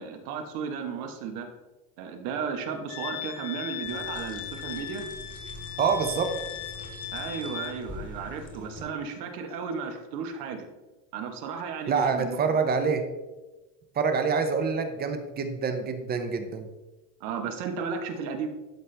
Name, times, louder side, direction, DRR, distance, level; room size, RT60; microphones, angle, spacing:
voice 1, 0.0-1.5 2.0-5.1 7.1-10.7 11.1-12.5 17.2-18.5, right 6 dB, 85° right, 5 dB, 1.3 m, -34 dB
Wind instrument woodwind instrument, 2.9-7.8, left 11 dB, 50° left, 1.4 m, -38 dB
sound 1, 3.8-8.8, left 1 dB, 20° left, 1.1 m, -44 dB
voice 2, 5.8-6.3 11.9-13.0 14.0-16.7, right 5 dB, 20° right, 7 dB, 0.6 m, -26 dB
11.5 x 4.2 x 3.3 m, 1.1 s
cardioid pair, 145°, 43 cm